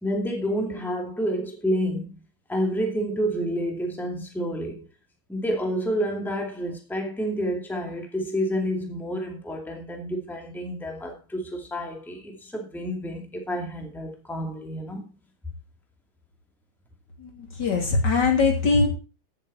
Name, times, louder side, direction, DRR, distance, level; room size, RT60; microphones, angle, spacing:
voice 1, 0.0-2.1 2.5-4.9 5.3-15.0, equal, ahead, 2.2 m, -29 dB
voice 2, 17.2-18.9, left 4 dB, 60° left, 3.3 m, -22 dB
16.0 x 7.4 x 4.2 m
omnidirectional pair, 2.1 m